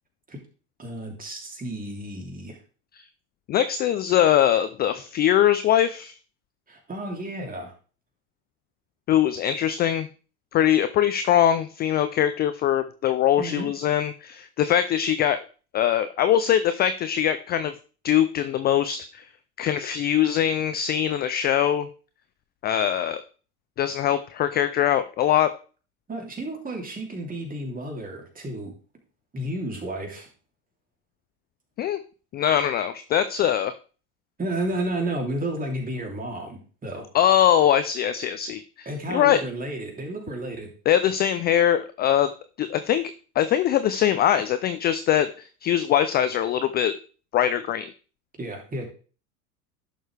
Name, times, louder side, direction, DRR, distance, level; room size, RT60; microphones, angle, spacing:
voice 1, 0.8-2.6 6.7-7.7 13.4-13.7 26.1-28.7 29.3-30.3 34.4-37.1 38.8-40.7 48.4-48.9, right 1 dB, 20° right, 2 dB, 3.0 m, -32 dB
voice 2, 3.5-6.2 9.1-10.1 10.5-15.4 15.7-17.7 18.0-19.2 19.6-21.9 22.6-23.2 23.8-25.5 31.8-32.0 32.3-33.7 37.1-39.4 40.9-42.3 42.6-45.3 45.6-46.9 47.3-47.9, left 10 dB, 25° left, 12 dB, 0.3 m, -22 dB
11.0 x 6.5 x 3.3 m, 0.38 s
hypercardioid pair, 90°, 45 cm